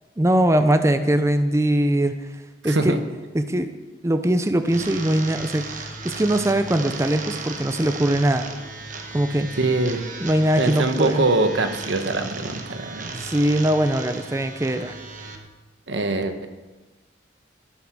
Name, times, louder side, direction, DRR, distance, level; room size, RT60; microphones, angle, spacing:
voice 1, 0.2-2.1 2.6-3.0 3.3-3.7 4.0-8.5 9.1-9.5 10.2-11.2 13.2-14.9, right 1 dB, 15° right, 9 dB, 0.5 m, -21 dB
voice 2, 2.6-3.0 9.6-10.0 10.6-13.2 15.9-16.5, right 2 dB, 85° right, 8 dB, 1.1 m, -23 dB
sound 1, 4.6-15.4, right 3 dB, 45° right, 1.3 m, -36 dB
13.0 x 9.0 x 6.2 m, 1.2 s
head